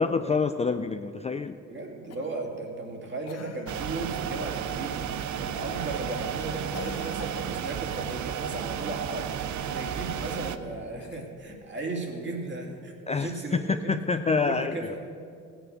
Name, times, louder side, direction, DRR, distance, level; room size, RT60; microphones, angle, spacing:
voice 1, 0.0-1.6 13.1-15.0, left 4 dB, 20° left, 8 dB, 0.4 m, -27 dB
voice 2, 1.7-5.1 5.4-9.3 9.6-15.0, right 2 dB, 40° right, 1 dB, 2.7 m, -36 dB
Cough, 2.1-2.5 3.3-4.0 5.2-5.5 6.7-7.8 10.9-11.7 13.1-13.2, left 8 dB, 60° left, 0.7 m, -45 dB
sound 1, 3.7-10.6, right 9 dB, 70° right, 0.7 m, -33 dB
15.5 x 9.0 x 6.7 m, 2.3 s
cardioid pair, 90°, 30 cm